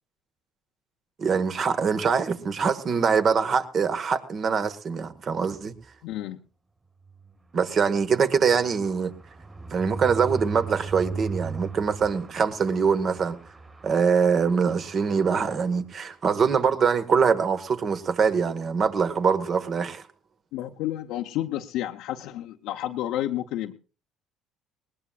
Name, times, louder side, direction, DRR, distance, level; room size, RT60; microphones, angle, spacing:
voice 1, 1.2-5.7 7.5-9.1 9.7-13.4 13.8-20.0, right 6 dB, 45° right, 1.5 m, -23 dB
voice 2, 6.0-6.4 20.5-23.7, left 13 dB, 75° left, 0.8 m, -30 dB
sound 1, 7.0-15.8 16.3-16.4 16.7-16.8 17.0-17.3, right 4 dB, 30° right, 3.3 m, -39 dB
20.0 x 19.0 x 2.4 m
supercardioid pair, 80°, 0 cm